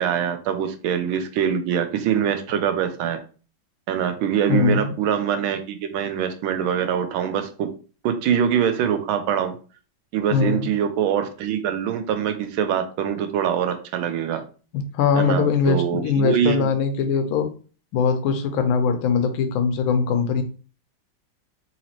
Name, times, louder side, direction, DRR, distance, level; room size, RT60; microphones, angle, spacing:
voice 1, 0.0-3.2 3.9-7.7 8.0-9.5 10.1-14.4 15.1-16.7, right 8 dB, 85° right, 8 dB, 1.4 m, -24 dB
voice 2, 4.5-4.9 10.3-10.7 14.9-17.5 17.9-20.4, left 5 dB, 85° left, 7 dB, 1.4 m, -21 dB
3.9 x 2.8 x 2.9 m, 0.37 s
omnidirectional pair, 2.2 m